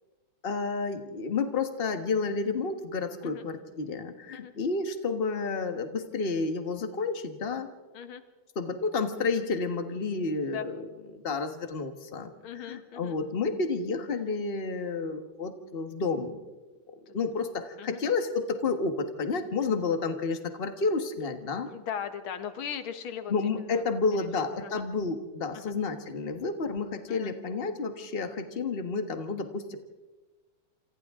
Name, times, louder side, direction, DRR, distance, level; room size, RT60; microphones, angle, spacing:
voice 1, 0.4-7.7 8.5-16.4 17.1-21.7 23.3-29.8, left 4 dB, 30° left, 7 dB, 1.5 m, -30 dB
voice 2, 12.4-13.2 17.1-17.2 17.8-18.0 21.7-23.8 24.2-24.3 24.6-24.8 25.5-25.7 27.1-27.4, left 8 dB, 90° left, 9 dB, 2.1 m, -39 dB
27.5 x 26.5 x 3.7 m, 1.2 s
omnidirectional pair, 2.2 m